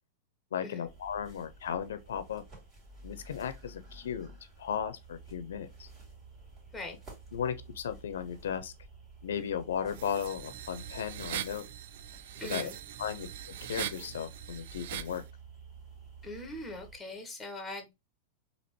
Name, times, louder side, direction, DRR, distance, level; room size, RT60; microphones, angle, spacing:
voice 1, 0.5-2.4 3.0-4.3 4.6-5.9 7.3-8.7 9.2-11.6 12.4-12.7 13.0-13.3 13.6-15.2, left 8 dB, 85° left, 0.5 m, -35 dB
sound 1, 0.8-17.0, right 4 dB, 30° right, 2.5 m, -52 dB
sound 2, 9.9-15.2, right 11 dB, 70° right, 0.4 m, -41 dB
voice 2, 12.4-12.7 16.2-17.9, left 2 dB, 5° left, 1.2 m, -41 dB
4.2 x 2.8 x 3.0 m
hypercardioid pair, 130°, 0 cm